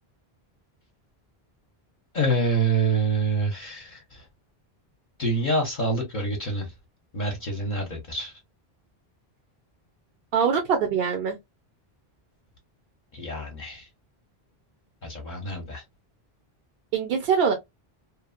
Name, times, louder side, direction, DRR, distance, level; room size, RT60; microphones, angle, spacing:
voice 1, 2.1-4.3 5.2-6.7 7.1-8.3 13.1-13.9 15.0-15.8, right 2 dB, 55° left, 0.8 m, -26 dB
voice 2, 10.3-11.4 16.9-17.5, right 6 dB, 70° right, 0.8 m, -23 dB
3.0 x 2.0 x 2.4 m
omnidirectional pair, 1.0 m